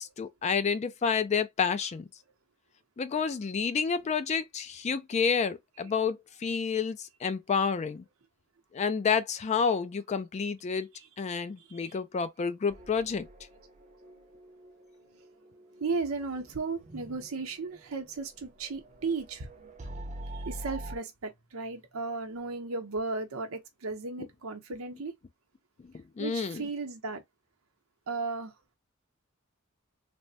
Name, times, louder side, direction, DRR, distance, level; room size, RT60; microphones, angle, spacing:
voice 1, 0.0-2.1 3.0-8.0 8.7-10.9 11.2-13.3 26.2-26.6, left 6 dB, 35° left, 0.3 m, -29 dB
voice 2, 10.9-12.0 15.8-19.5 20.3-25.1 26.2-27.2 28.1-28.5, right 4 dB, 80° right, 0.7 m, -35 dB
sound 1, 12.7-21.0, right 1 dB, 35° right, 0.6 m, -46 dB
3.3 x 2.0 x 2.7 m
head